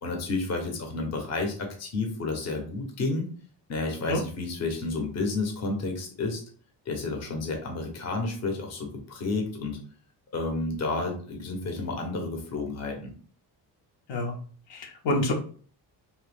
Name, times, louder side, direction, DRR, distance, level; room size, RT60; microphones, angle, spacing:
voice 1, 0.0-3.3 3.7-6.4 6.9-9.8 10.3-13.1, left 3 dB, 35° left, 2 dB, 0.7 m, -31 dB
voice 2, 14.7-15.3, left 1 dB, 80° left, 2 dB, 0.8 m, -27 dB
2.9 x 2.2 x 3.3 m, 0.43 s
wide cardioid pair, 160°, 44 cm